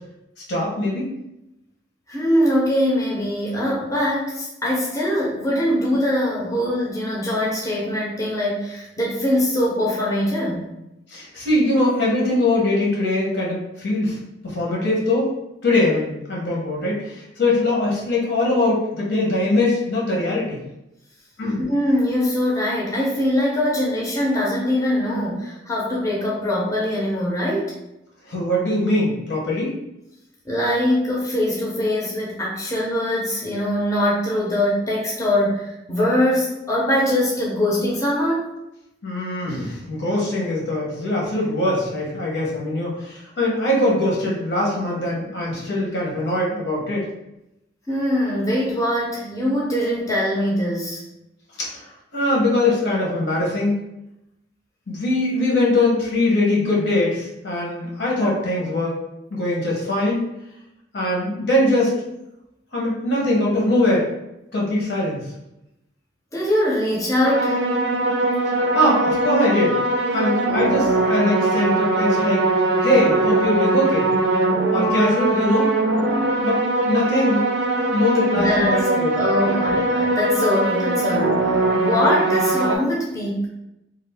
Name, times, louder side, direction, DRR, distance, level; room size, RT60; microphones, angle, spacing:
voice 1, 0.5-1.1 11.1-14.2 14.4-15.3 15.6-20.6 21.4-21.6 28.3-29.7 39.0-47.1 51.6-51.8 52.1-53.8 54.9-59.0 59.3-60.2 60.9-62.1 62.7-64.1 64.5-65.3 68.7-69.8 70.1-72.4 72.8-74.1 74.7-75.7 76.4-76.6 76.9-77.5 77.8-79.1 79.4-79.7, left 1 dB, 70° left, -4 dB, 1.0 m, -21 dB
voice 2, 2.1-10.7 21.7-27.7 30.5-38.5 47.9-51.0 66.3-67.6 78.3-78.8 79.1-81.5 81.7-83.5, left 1 dB, 20° left, -5 dB, 0.6 m, -22 dB
sound 1, 67.2-82.8, right 2 dB, 65° right, 0.4 m, -21 dB
2.5 x 2.4 x 3.4 m, 0.89 s
head